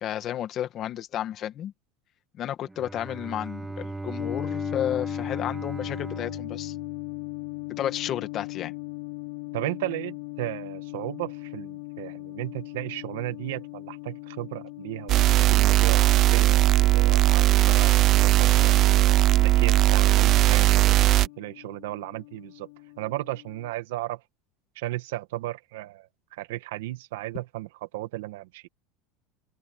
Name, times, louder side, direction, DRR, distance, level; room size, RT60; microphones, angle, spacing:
voice 1, 0.0-1.7 2.4-6.8 7.7-8.7, left 11 dB, 35° left, 2.0 m, -32 dB
Bowed string instrument, 2.6-7.6, right 2 dB, 10° right, 1.1 m, -38 dB
sound 1, 4.2-23.7, left 28 dB, 85° left, 1.3 m, -39 dB
voice 2, 9.5-18.7 19.3-22.7 23.0-24.2 24.8-28.6, right 17 dB, 85° right, 1.8 m, -35 dB
sound 2, 15.1-21.3, right 16 dB, 40° right, 0.5 m, -19 dB
open air
supercardioid pair, 155°, 0 cm